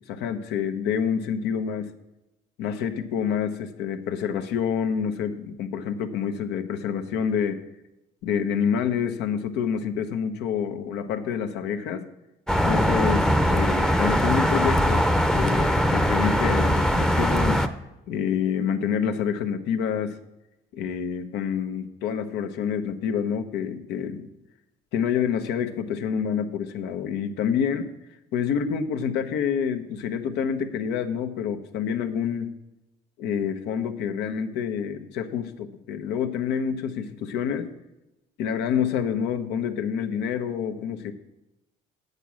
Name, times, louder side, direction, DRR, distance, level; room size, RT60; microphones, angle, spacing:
voice 1, 0.0-1.9 2.6-7.6 8.2-12.0 12.7-15.1 15.3-17.7 18.1-20.2 20.7-24.3 24.9-27.9 28.3-32.6 33.2-37.7 38.4-41.1, left 7 dB, 90° left, 7 dB, 0.9 m, -27 dB
sound 1, 12.5-17.7, equal, 5° left, 0.6 m, -21 dB
8.3 x 6.7 x 7.4 m, 0.94 s
cardioid pair, 110°, 17 cm